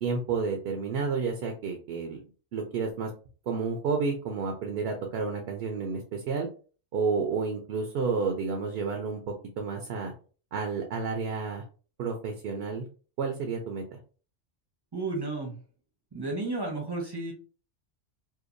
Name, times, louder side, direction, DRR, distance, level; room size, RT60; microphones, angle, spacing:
voice 1, 0.0-2.2 2.5-3.1 3.5-6.5 6.9-10.1 10.5-11.6 12.0-12.9 13.2-14.0, right 5 dB, 65° right, 3 dB, 0.7 m, -30 dB
voice 2, 14.9-15.5 16.1-17.3, right 3 dB, 25° right, -1 dB, 0.6 m, -32 dB
2.7 x 2.2 x 2.4 m, 0.38 s
omnidirectional pair, 1.3 m